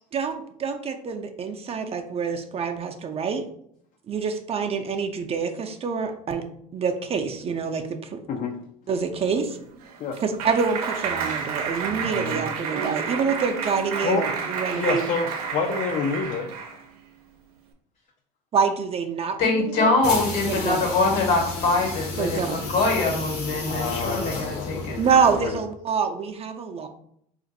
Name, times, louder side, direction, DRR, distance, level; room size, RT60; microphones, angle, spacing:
voice 1, 0.1-3.4 4.1-6.4 6.7-8.2 8.9-9.6 10.2-15.0 18.5-19.9 20.6-20.8 22.2-22.6 25.0-26.9, right 5 dB, 35° right, 5 dB, 0.4 m, -26 dB
Clapping, 9.6-16.8, right 6 dB, 90° right, 0.5 m, -30 dB
voice 2, 14.7-16.5 23.7-25.0 25.4-25.6, left 4 dB, 45° left, 3 dB, 0.5 m, -28 dB
voice 3, 19.4-25.0, left 3 dB, 65° left, 1 dB, 1.3 m, -23 dB
sound 1, 20.0-25.6, left 3 dB, 85° left, 1.1 m, -33 dB
2.5 x 2.5 x 3.9 m, 0.68 s
hypercardioid pair, 80°, 18 cm